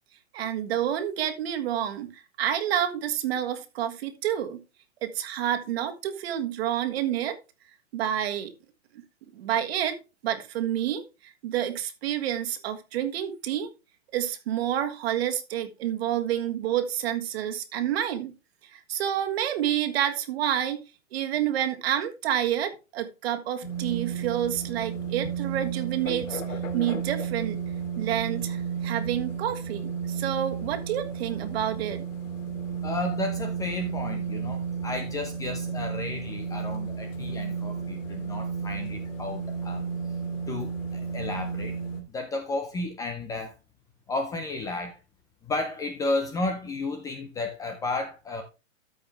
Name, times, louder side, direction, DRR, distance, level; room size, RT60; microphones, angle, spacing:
voice 1, 0.3-4.6 5.0-7.4 7.9-8.5 9.3-10.0 10.2-13.7 14.1-18.3 18.7-20.8 21.1-27.6 28.0-32.0, right 11 dB, 50° right, 1.6 m, -29 dB
sound 1, 23.6-42.0, right 6 dB, 80° left, 2.4 m, -33 dB
voice 2, 32.8-39.9 40.5-41.8 42.1-43.5 44.1-45.0 45.4-48.4, left 3 dB, 10° left, 0.5 m, -33 dB
13.5 x 4.9 x 3.4 m
hypercardioid pair, 145°, 39 cm